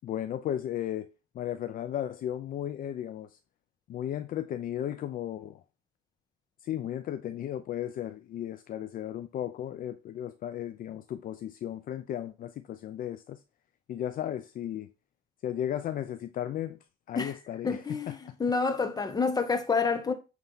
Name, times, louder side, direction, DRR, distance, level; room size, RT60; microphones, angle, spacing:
voice 1, 0.0-3.4 3.9-5.6 6.6-13.4 13.9-14.9 15.4-16.8 17.1-18.3, left 11 dB, 55° left, 0.6 m, -35 dB
voice 2, 17.6-20.1, left 4 dB, 25° left, 1.5 m, -28 dB
9.2 x 3.7 x 5.6 m
cardioid pair, 110°, 17 cm